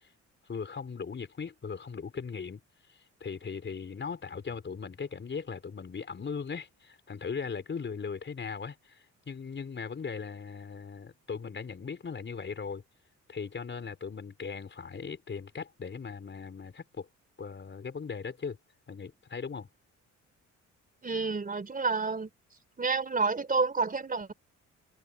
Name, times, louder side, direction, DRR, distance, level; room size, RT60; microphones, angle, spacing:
voice 1, 0.5-2.6 3.2-12.8 13.3-17.1 17.4-18.6 18.9-19.7, left 5 dB, 40° left, 4.3 m, -38 dB
voice 2, 21.0-22.3 22.8-24.3, right 4 dB, 30° right, 3.2 m, -29 dB
cardioid pair, 90°, 30 cm